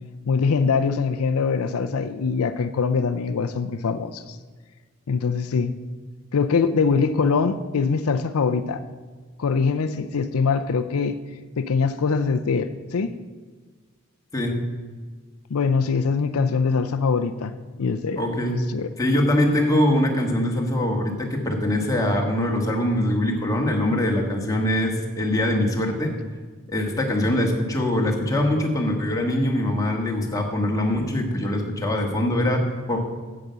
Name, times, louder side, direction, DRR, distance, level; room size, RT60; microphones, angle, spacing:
voice 1, 0.3-4.4 5.1-5.7 6.3-8.8 9.4-11.2 11.6-13.1 15.5-17.5 17.8-18.2 18.5-18.9, left 5 dB, 80° left, 10 dB, 0.5 m, -23 dB
voice 2, 18.2-18.6 19.0-26.1 26.7-33.0, left 1 dB, 15° left, 0 dB, 1.5 m, -23 dB
8.4 x 7.8 x 6.8 m, 1.5 s
head